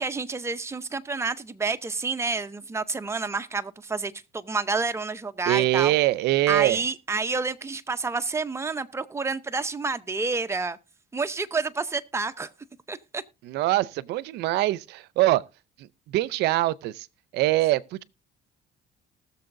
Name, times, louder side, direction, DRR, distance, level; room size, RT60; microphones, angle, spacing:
voice 1, 0.0-5.9 6.5-10.8 11.1-12.5 12.9-13.2, right 4 dB, 15° right, 0.7 m, -29 dB
voice 2, 5.5-6.8 13.4-15.4 15.8-17.1 17.3-18.0, right 16 dB, 80° right, 0.5 m, -23 dB
19.5 x 6.9 x 2.6 m
cardioid pair, 110°, 17 cm